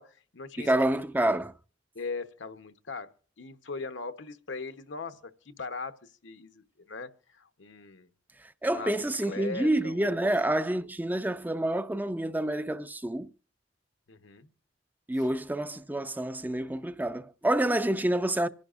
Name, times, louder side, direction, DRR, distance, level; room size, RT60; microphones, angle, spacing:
voice 1, 0.0-0.7 1.9-8.1 8.7-8.9 9.2-10.3 14.1-14.5, left 4 dB, 75° left, 1.0 m, -40 dB
voice 2, 0.6-1.5 8.4-13.3 15.1-18.5, right 1 dB, 10° right, 0.5 m, -28 dB
26.5 x 10.5 x 2.5 m
head